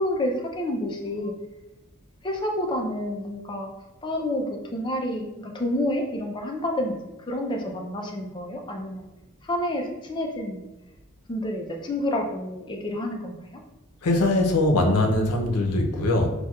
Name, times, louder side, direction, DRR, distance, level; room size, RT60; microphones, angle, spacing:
voice 1, 0.0-1.3 2.2-3.7 4.0-9.1 9.4-10.7 11.3-13.6, left 1 dB, 20° left, 1 dB, 0.3 m, -29 dB
voice 2, 14.0-16.3, left 2 dB, 90° left, 2 dB, 0.5 m, -21 dB
4.2 x 2.2 x 2.3 m, 1.0 s
head